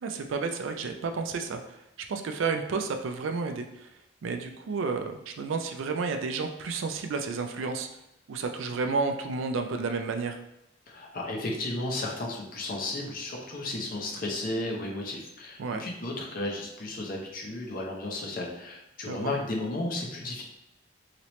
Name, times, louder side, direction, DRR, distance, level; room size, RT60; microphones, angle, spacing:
voice 1, 0.0-1.6 2.1-3.9 4.2-7.9 8.3-10.4 15.6-15.8 19.1-19.3, right 4 dB, 85° right, 5 dB, 0.4 m, -31 dB
voice 2, 10.9-20.4, left 2 dB, 45° left, 0 dB, 0.6 m, -34 dB
2.9 x 2.9 x 3.1 m, 0.86 s
head